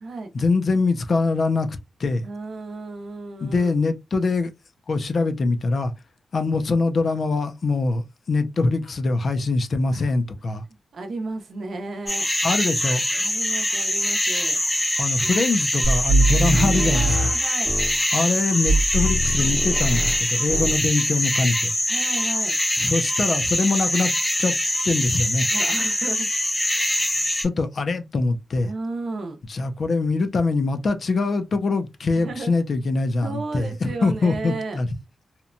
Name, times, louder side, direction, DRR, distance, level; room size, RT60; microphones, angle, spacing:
voice 1, 0.3-2.2 3.4-4.5 4.9-5.9 6.3-10.6 12.4-13.0 15.0-17.3 18.1-21.7 22.8-24.1 24.4-24.5 24.8-25.5 27.4-28.7 29.5-34.9, left 3 dB, 50° left, 0.4 m, -23 dB
voice 2, 2.2-3.7 9.9-10.1 10.9-12.3 13.2-14.6 15.2-15.3 16.9-17.7 21.9-22.5 25.5-26.3 28.6-29.4 32.1-32.5 33.2-34.8, right 3 dB, 65° right, 0.6 m, -33 dB
sound 1, 12.1-27.5, left 1 dB, 15° left, 0.7 m, -23 dB
sound 2, 15.8-18.0 18.7-20.2 20.5-20.8, right 2 dB, 25° right, 0.8 m, -22 dB
2.8 x 2.1 x 2.5 m
wide cardioid pair, 135°, 0 cm